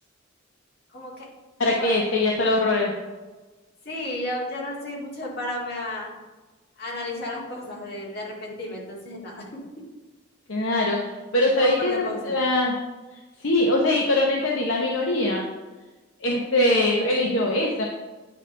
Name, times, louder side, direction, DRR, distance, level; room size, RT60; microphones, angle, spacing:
voice 1, 0.9-1.3 1.7-2.2 3.8-6.1 6.8-9.6 11.6-12.4, left 1 dB, 55° left, -4 dB, 2.1 m, -33 dB
voice 2, 1.6-2.9 10.5-11.0 11.3-12.7 13.4-15.5 16.2-17.8, left 1 dB, 75° left, -1 dB, 0.9 m, -22 dB
9.4 x 5.1 x 3.3 m, 1.2 s
head